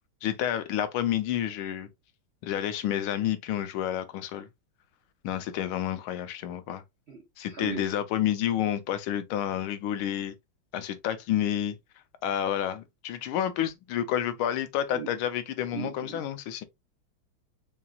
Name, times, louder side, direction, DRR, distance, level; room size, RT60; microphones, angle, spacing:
voice 1, 0.2-1.9 2.4-4.5 5.2-6.8 7.4-10.3 10.7-11.7 12.2-16.6, left 10 dB, 80° left, 1.5 m, -29 dB
voice 2, 7.1-7.9 14.9-15.1 15.7-16.2, right 5 dB, 75° right, 0.6 m, -38 dB
5.6 x 2.7 x 2.3 m
omnidirectional pair, 2.4 m